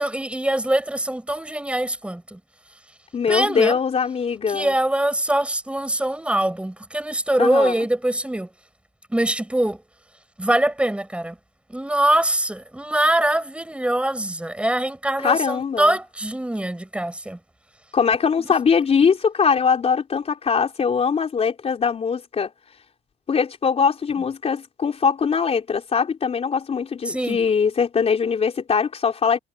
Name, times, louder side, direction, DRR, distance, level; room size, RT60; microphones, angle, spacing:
voice 1, 0.0-2.4 3.3-3.8 4.5-8.5 9.1-9.8 10.4-11.4 11.7-17.4 18.4-18.6 27.1-27.4, right 1 dB, 5° right, 7.4 m, -23 dB
voice 2, 3.1-4.8 7.4-7.8 15.2-16.0 17.9-22.5 23.3-29.4, left 6 dB, 35° left, 4.1 m, -21 dB
cardioid pair, 125°, 18 cm